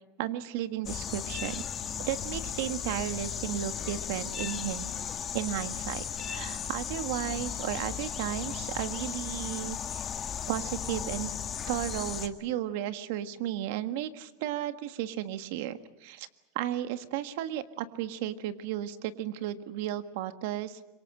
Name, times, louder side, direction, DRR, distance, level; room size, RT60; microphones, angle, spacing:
voice 1, 0.2-1.6 2.1-4.9 5.3-10.0 10.5-11.3 11.7-16.3 16.5-20.8, right 12 dB, 70° right, 10 dB, 1.6 m, -34 dB
sound 1, 0.8-12.3, left 8 dB, 25° left, 1.7 m, -36 dB
26.0 x 24.0 x 7.8 m, 1.1 s
supercardioid pair, 140°, 0 cm